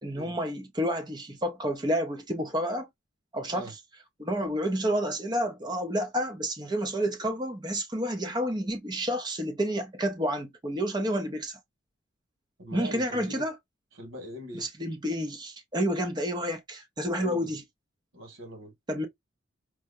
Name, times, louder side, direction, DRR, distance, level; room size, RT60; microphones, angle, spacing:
voice 1, 0.0-2.9 3.3-3.7 4.2-11.6 12.7-13.5 14.6-17.6 18.9-19.1, equal, 20° right, 0.7 m, -30 dB
voice 2, 12.6-13.5 13.9-14.7 17.2-17.5 18.1-18.7, equal, 85° right, 2.0 m, -41 dB
4.6 x 2.2 x 2.6 m
head